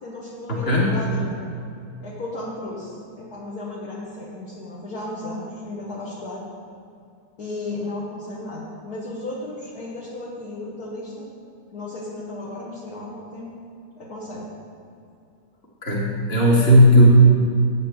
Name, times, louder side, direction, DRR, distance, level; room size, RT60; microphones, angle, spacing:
voice 1, 0.0-1.5 2.0-6.4 7.4-11.3 11.7-13.5 14.0-14.4, left 2 dB, 55° left, -6 dB, 1.5 m, -34 dB
voice 2, 15.8-17.1, equal, 30° left, -4 dB, 1.8 m, -15 dB
8.3 x 5.3 x 7.1 m, 2.6 s
omnidirectional pair, 2.3 m